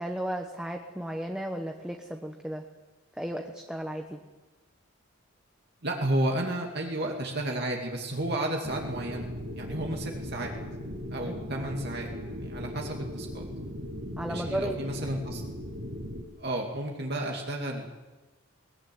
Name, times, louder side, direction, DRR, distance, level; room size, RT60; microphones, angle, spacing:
voice 1, 0.0-2.6 3.1-4.2 11.3-11.4 14.2-14.8, right 1 dB, 5° right, 3 dB, 1.1 m, -34 dB
voice 2, 5.8-9.3 9.6-10.5 11.1-13.5 14.3-15.4 16.4-17.9, right 1 dB, 50° right, 0 dB, 2.4 m, -32 dB
sound 1, 8.6-16.2, equal, 75° right, 5.8 m, -38 dB
21.0 x 19.5 x 9.4 m, 1.2 s
head